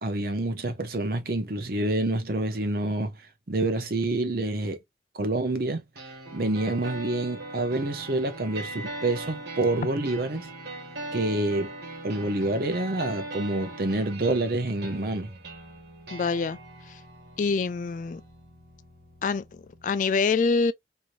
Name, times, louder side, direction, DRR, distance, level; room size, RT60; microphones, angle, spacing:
voice 1, 0.0-3.1 3.5-4.8 5.1-5.8 6.3-10.5 11.1-11.7 12.0-15.3, right 2 dB, 55° right, 0.8 m, -27 dB
sound 1, 6.0-19.9, right 2 dB, 75° right, 1.7 m, -41 dB
voice 2, 16.1-16.6 17.4-18.2 19.2-20.7, left 4 dB, 45° left, 0.3 m, -25 dB
3.1 x 2.7 x 2.5 m
head